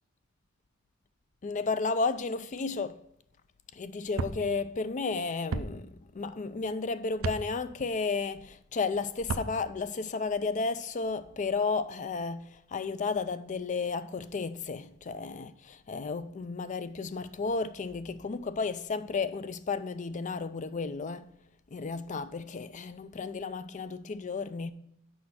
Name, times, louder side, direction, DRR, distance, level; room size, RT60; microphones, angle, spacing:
voice 1, 1.4-3.0 3.7-21.3 21.7-24.7, left 4 dB, 40° left, 0.4 m, -33 dB
sound 1, 4.2-4.4 5.5-5.7 7.2-7.4 9.2-9.5, right 3 dB, 85° right, 0.6 m, -32 dB
6.3 x 5.3 x 5.8 m
head